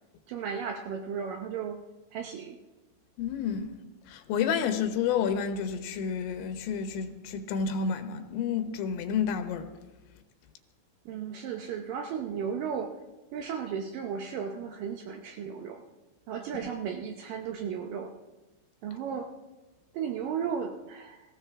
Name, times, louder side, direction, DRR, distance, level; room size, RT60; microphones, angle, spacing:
voice 1, 0.3-1.8 2.1-2.6 11.1-12.9 13.3-15.8 16.3-18.1 18.8-19.3 19.9-21.2, right 7 dB, 90° right, 1.9 m, -35 dB
voice 2, 3.2-3.7 4.1-9.7, left 7 dB, 90° left, 3.4 m, -30 dB
20.0 x 15.5 x 3.6 m
omnidirectional pair, 5.1 m